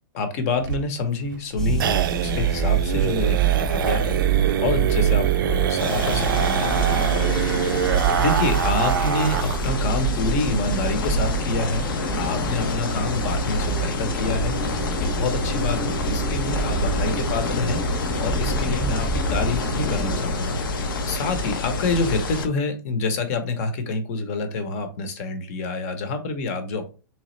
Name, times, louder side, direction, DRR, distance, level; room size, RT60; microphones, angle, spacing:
voice 1, 0.1-1.9 2.2-7.8 8.2-26.9, left 3 dB, 45° left, 8 dB, 0.8 m, -27 dB
sound 1, 0.6-9.7 10.0-10.1 10.4-10.5 10.8-11.3, right 8 dB, 80° right, 0.4 m, -25 dB
sound 2, 1.6-20.2, right 6 dB, 5° left, 0.3 m, -26 dB
sound 3, 5.8-22.5, left 3 dB, 85° left, 0.7 m, -28 dB
3.5 x 2.9 x 3.1 m, 0.34 s
hypercardioid pair, 155°, 11 cm